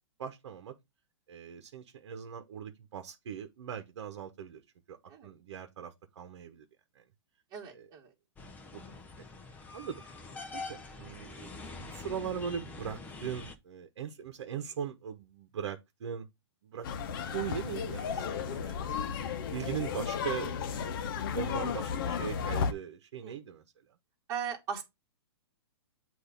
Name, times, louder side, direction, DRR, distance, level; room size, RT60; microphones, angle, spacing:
voice 1, 0.2-0.7 1.3-4.6 4.9-6.7 6.9-7.0 7.7-7.9 8.7-8.8 9.2-9.3 9.7-10.0 10.5-16.3 16.6-16.9 17.3-18.9 19.5-20.8 21.1-23.6, right 8 dB, 65° right, 1.1 m, -40 dB
voice 2, 7.5-8.1 20.7-21.0 23.2-23.4 24.3-24.8, right 7 dB, 25° right, 1.9 m, -39 dB
sound 1, 8.4-13.5, left 3 dB, 10° left, 0.7 m, -45 dB
sound 2, 16.8-22.7, left 7 dB, 50° left, 0.8 m, -34 dB
8.0 x 2.7 x 5.2 m
hypercardioid pair, 155°, 15 cm